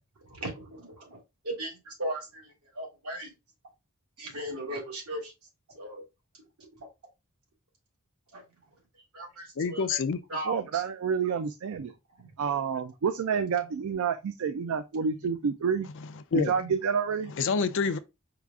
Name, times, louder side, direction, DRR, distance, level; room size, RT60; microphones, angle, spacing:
voice 1, 0.3-1.2 1.4-3.3 4.2-5.3 5.7-6.0 8.3-8.4 9.1-9.4 9.7-9.8 10.3-10.6, right 1 dB, 90° right, 1.8 m, -36 dB
voice 2, 9.6-10.2 16.3-16.5 17.4-18.0, left 5 dB, 60° left, 0.4 m, -27 dB
voice 3, 10.5-11.9 12.4-15.9 16.3-17.3, right 6 dB, 70° right, 0.4 m, -29 dB
4.8 x 2.4 x 3.5 m
head